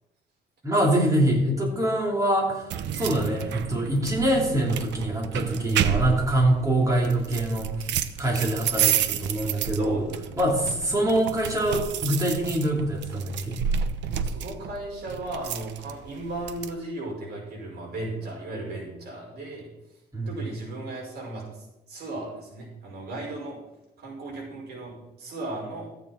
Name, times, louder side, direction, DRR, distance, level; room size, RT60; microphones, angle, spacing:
voice 1, 0.6-2.7 2.9-7.7 8.2-10.0 10.4-13.6 20.1-20.3, right 1 dB, 20° right, -1 dB, 3.0 m, -24 dB
sound 1, 2.7-16.7, right 8 dB, 85° right, 0.8 m, -30 dB
voice 2, 9.8-10.4 14.0-19.7 20.3-21.4 21.9-23.6 24.0-25.9, right 2 dB, 65° right, -3 dB, 5.6 m, -36 dB
14.0 x 9.1 x 4.5 m, 0.90 s
cardioid pair, 155°, 18 cm